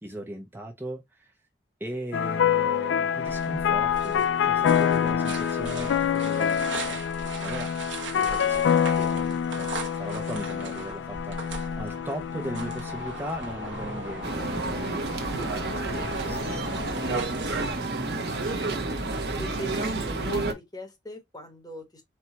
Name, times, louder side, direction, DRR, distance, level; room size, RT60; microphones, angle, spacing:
voice 1, 0.0-1.4 1.8-7.0 7.4-7.7 8.2-17.2, right 1 dB, 10° right, 0.5 m, -39 dB
sound 1, 2.1-17.1, left 8 dB, 80° left, 0.3 m, -27 dB
sound 2, 3.2-17.7, right 3 dB, 85° right, 1.0 m, -38 dB
sound 3, 14.2-20.5, right 2 dB, 55° right, 0.9 m, -30 dB
voice 2, 19.4-22.0, equal, 20° left, 1.1 m, -40 dB
4.5 x 2.3 x 4.0 m
head